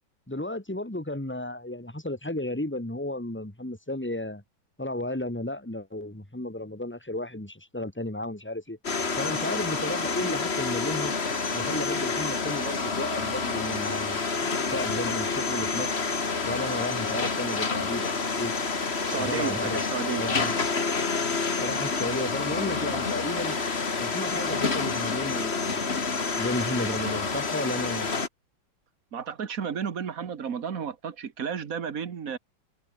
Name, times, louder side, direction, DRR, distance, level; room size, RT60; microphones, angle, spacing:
voice 1, 0.3-4.4 4.8-8.8 9.2-11.1 11.5-15.9 16.5-18.5 19.2-19.8 20.2-20.6 21.6-23.6 24.0-26.0 26.3-28.1, left 1 dB, 5° left, 2.5 m, -33 dB
sound 1, 8.8-28.3, left 4 dB, 35° left, 2.1 m, -28 dB
voice 2, 19.0-20.2 29.1-32.4, right 7 dB, 50° right, 1.8 m, -32 dB
omnidirectional pair, 2.1 m